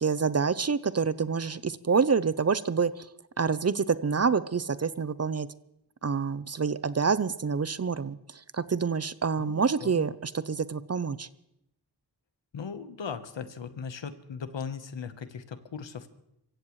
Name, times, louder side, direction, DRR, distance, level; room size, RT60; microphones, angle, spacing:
voice 1, 0.0-3.1 3.4-5.5 6.0-8.2 8.5-11.3, right 5 dB, 35° right, 16 dB, 0.6 m, -27 dB
voice 2, 9.4-10.0 12.5-16.1, left 6 dB, 80° left, 11 dB, 1.2 m, -38 dB
25.0 x 15.5 x 3.2 m, 0.81 s
cardioid pair, 60°, 44 cm